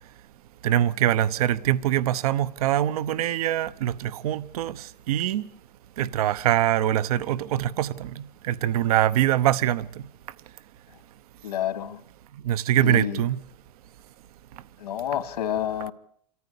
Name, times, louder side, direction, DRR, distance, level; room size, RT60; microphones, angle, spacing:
voice 1, 0.6-5.4 6.0-9.9 12.4-13.4, right 12 dB, 60° right, 0.9 m, -24 dB
voice 2, 11.4-12.0 12.8-13.2 14.8-15.9, left 10 dB, 80° left, 2.3 m, -29 dB
26.5 x 14.0 x 8.4 m
hypercardioid pair, 145°, 21 cm